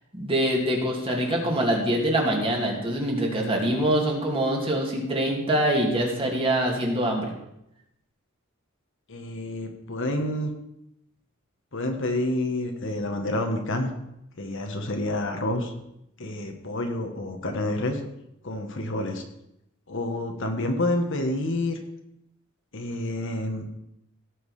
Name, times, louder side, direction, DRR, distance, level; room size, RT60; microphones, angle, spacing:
voice 1, 0.1-7.3, right 1 dB, 25° right, 0 dB, 2.4 m, -24 dB
voice 2, 9.1-10.5 11.7-13.9 14.4-15.7 16.2-18.0 18.4-19.2 19.9-21.8 22.7-23.6, left 1 dB, 60° left, 4 dB, 1.5 m, -28 dB
17.0 x 6.5 x 4.9 m, 0.83 s
head